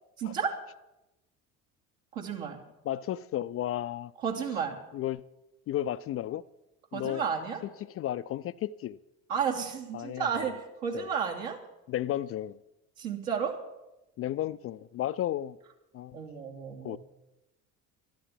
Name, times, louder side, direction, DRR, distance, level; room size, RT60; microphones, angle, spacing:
voice 1, 0.2-0.5 2.1-2.6 4.2-4.8 6.9-7.6 9.3-11.6 13.0-13.6 16.1-17.0, right 7 dB, 70° right, 0 dB, 3.1 m, -32 dB
voice 2, 2.9-4.1 4.9-5.2 5.7-6.4 6.9-7.2 7.8-9.0 9.9-10.5 10.9-11.1 11.9-12.6 14.2-15.6 15.9-16.2 16.8-17.0, left 12 dB, 35° left, 14 dB, 0.4 m, -33 dB
12.5 x 12.5 x 7.4 m, 0.96 s
figure-of-eight pair, 60°, 43 cm